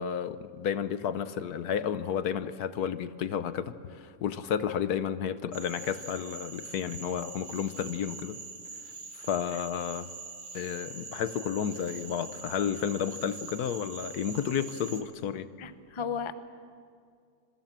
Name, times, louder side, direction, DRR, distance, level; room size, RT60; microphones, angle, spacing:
voice 1, 0.0-8.4 9.1-10.1 10.5-15.5, left 8 dB, 70° left, 13 dB, 1.3 m, -32 dB
Cricket / Frog, 5.5-15.0, right 3 dB, 35° right, 1.8 m, -44 dB
voice 2, 15.6-16.3, left 7 dB, 25° left, 11 dB, 0.6 m, -34 dB
26.5 x 22.5 x 7.5 m, 2.3 s
omnidirectional pair, 1.8 m